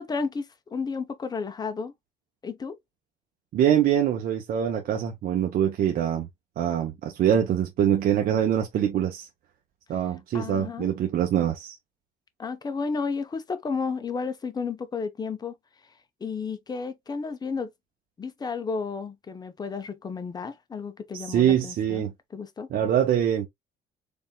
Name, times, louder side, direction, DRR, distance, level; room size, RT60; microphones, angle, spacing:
voice 1, 0.0-1.9 2.4-2.8 10.3-10.9 12.4-15.5 16.2-17.7 18.2-22.0 22.3-22.7, left 5 dB, 25° left, 0.7 m, -32 dB
voice 2, 3.5-6.3 6.6-9.3 9.9-11.8 21.1-22.1 22.7-23.5, right 10 dB, 60° right, 0.8 m, -24 dB
4.2 x 3.5 x 2.2 m
cardioid pair, 110°, 17 cm